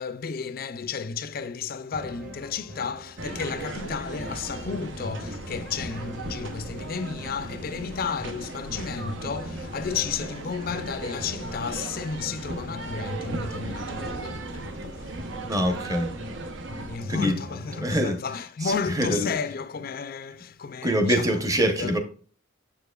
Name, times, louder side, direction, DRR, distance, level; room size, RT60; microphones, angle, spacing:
voice 1, 0.0-15.3 16.8-22.0, left 5 dB, 45° left, 0.4 m, -33 dB
sound 1, 1.9-17.9, left 1 dB, 40° right, 1.5 m, -42 dB
sound 2, 3.2-17.0, right 2 dB, 65° right, 0.8 m, -37 dB
voice 2, 15.5-16.1 17.1-17.4 17.8-18.2 18.6-19.3 20.8-22.0, equal, 15° right, 0.8 m, -24 dB
7.2 x 6.7 x 2.3 m
head